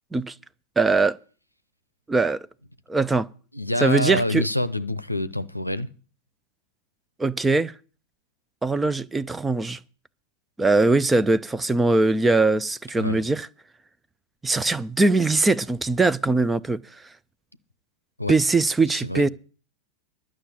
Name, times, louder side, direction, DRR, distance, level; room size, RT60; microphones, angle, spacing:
voice 1, 0.8-1.2 2.1-2.4 2.9-3.3 3.8-4.4 7.2-7.7 8.6-9.8 10.6-13.5 14.4-16.8 18.3-19.3, right 3 dB, 10° right, 0.5 m, -21 dB
voice 2, 3.5-5.9 13.0-13.2 18.2-18.4 18.9-19.2, left 1 dB, 90° left, 0.6 m, -26 dB
11.5 x 6.3 x 8.7 m
figure-of-eight pair, 90°, 0 cm